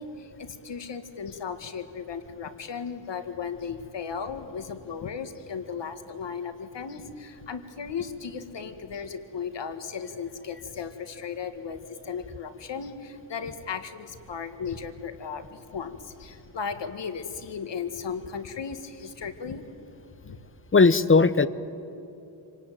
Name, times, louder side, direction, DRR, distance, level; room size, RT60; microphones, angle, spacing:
voice 1, 0.0-19.6 20.2-20.4, left 6 dB, 60° left, 9 dB, 1.9 m, -36 dB
voice 2, 20.7-21.5, left 4 dB, 25° left, 15 dB, 0.9 m, -17 dB
25.0 x 18.5 x 9.3 m, 2.9 s
cardioid pair, 65°, 49 cm